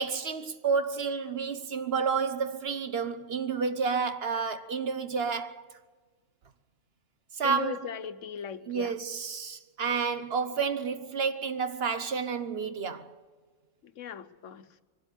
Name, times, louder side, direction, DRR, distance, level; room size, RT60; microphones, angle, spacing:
voice 1, 0.0-5.8 7.3-7.8 8.7-13.1, right 5 dB, 55° right, 1.2 m, -30 dB
voice 2, 7.4-8.9 13.8-14.8, left 8 dB, 90° left, 1.2 m, -38 dB
22.5 x 12.5 x 9.7 m
omnidirectional pair, 1.3 m